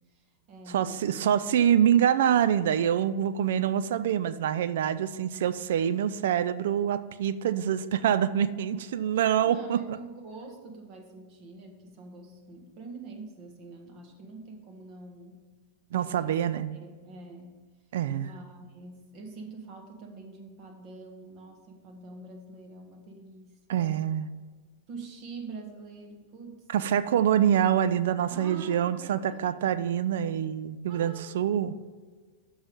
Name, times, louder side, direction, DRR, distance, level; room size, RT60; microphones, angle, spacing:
voice 1, 0.1-1.3 9.4-15.4 15.9-16.4 16.7-17.6 18.1-24.1 24.9-26.7 28.3-29.8 30.9-31.4, right 3 dB, 45° right, 3 dB, 1.5 m, -45 dB
voice 2, 0.7-10.0 15.9-16.7 17.9-18.3 23.7-24.3 26.7-31.8, right 9 dB, 65° right, 13 dB, 0.4 m, -25 dB
7.0 x 5.5 x 5.1 m, 1.5 s
figure-of-eight pair, 95°, 0 cm